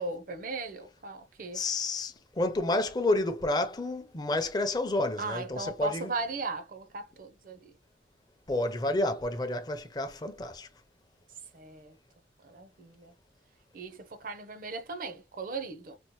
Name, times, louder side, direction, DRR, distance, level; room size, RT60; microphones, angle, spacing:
voice 1, 0.0-1.6 5.2-7.7 11.5-12.0 12.4-13.1 13.7-16.0, right 3 dB, 50° right, 0.6 m, -37 dB
voice 2, 1.5-6.1 8.5-10.7, left 2 dB, 25° left, 0.5 m, -30 dB
4.2 x 2.0 x 3.0 m
head